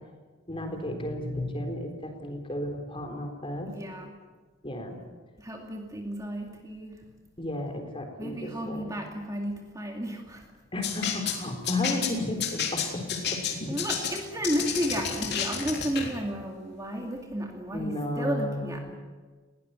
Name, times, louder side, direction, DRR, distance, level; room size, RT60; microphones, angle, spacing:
voice 1, 0.5-3.7 4.6-5.0 7.4-8.9 10.7-13.6 17.7-18.8, left 1 dB, 25° left, 4 dB, 4.0 m, -33 dB
voice 2, 3.7-4.2 5.4-7.1 8.2-10.5 13.7-19.0, right 1 dB, 15° right, 2 dB, 2.3 m, -33 dB
sound 1, 10.8-16.1, left 7 dB, 55° left, 3.5 m, -31 dB
21.0 x 18.0 x 9.6 m, 1.4 s
head